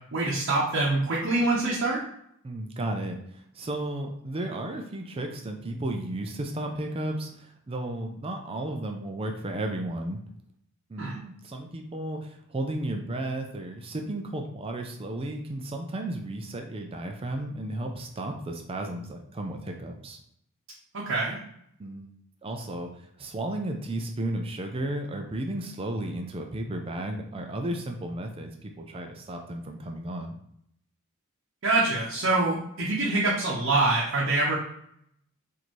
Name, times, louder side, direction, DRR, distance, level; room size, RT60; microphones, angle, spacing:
voice 1, 0.1-2.0 11.0-11.2 20.9-21.4 31.6-34.6, right 2 dB, 60° right, -6 dB, 0.8 m, -25 dB
voice 2, 2.4-10.2 10.9-20.2 21.8-22.1 22.4-22.9 23.2-30.3, right 1 dB, 25° right, 3 dB, 0.4 m, -34 dB
4.3 x 2.7 x 3.0 m, 0.71 s
head